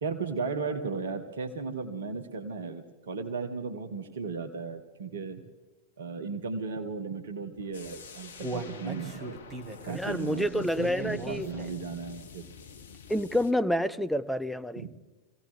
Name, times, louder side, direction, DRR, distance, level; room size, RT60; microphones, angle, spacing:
voice 1, 0.0-5.4 6.0-9.4 9.8-12.5 14.8-14.9, right 4 dB, 60° right, 7 dB, 1.1 m, -35 dB
sound 1, 7.7-13.5, left 6 dB, 65° left, 0.7 m, -48 dB
Human voice, 7.8-12.0 12.4-12.5 12.9-13.0, right 2 dB, 25° right, 1.8 m, -39 dB
voice 2, 9.9-11.5 13.1-14.9, left 1 dB, ahead, 10 dB, 0.6 m, -28 dB
24.0 x 16.5 x 3.4 m, 1.2 s
figure-of-eight pair, 90°, 0 cm